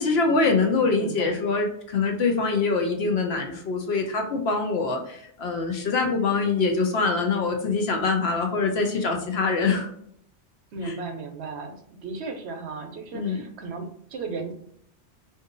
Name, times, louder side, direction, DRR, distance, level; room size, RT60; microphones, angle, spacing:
voice 1, 0.0-9.9 10.8-11.0 13.1-13.4, left 4 dB, 65° left, 3 dB, 0.8 m, -24 dB
voice 2, 1.0-1.4 10.7-14.5, right 4 dB, 70° right, 5 dB, 0.8 m, -35 dB
2.6 x 2.6 x 3.7 m, 0.66 s
omnidirectional pair, 1.2 m